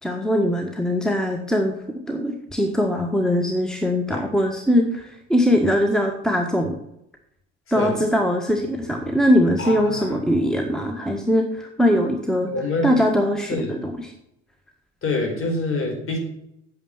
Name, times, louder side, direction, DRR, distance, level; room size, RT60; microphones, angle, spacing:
voice 1, 0.0-1.7 2.1-6.7 7.7-12.5 12.8-14.1, equal, ahead, 4 dB, 1.6 m, -21 dB
voice 2, 9.6-10.2 12.5-13.0 13.5-13.7 15.0-16.2, left 2 dB, 40° left, 3 dB, 4.6 m, -26 dB
9.1 x 7.2 x 8.9 m, 0.78 s
figure-of-eight pair, 60°, 34 cm